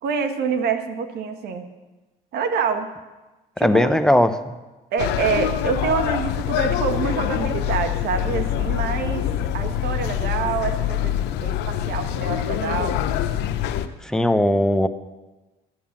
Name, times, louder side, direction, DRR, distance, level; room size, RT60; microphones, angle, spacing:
voice 1, 0.0-1.7 2.3-2.9 3.6-4.0 4.9-9.3 9.5-13.1, right 6 dB, 70° right, 7 dB, 1.5 m, -26 dB
voice 2, 3.6-4.5 14.0-14.9, left 1 dB, 5° left, 9 dB, 0.8 m, -18 dB
sound 1, 5.0-13.9, left 11 dB, 90° left, 0.7 m, -25 dB
12.0 x 9.5 x 7.3 m, 1.1 s
cardioid pair, 110°, 17 cm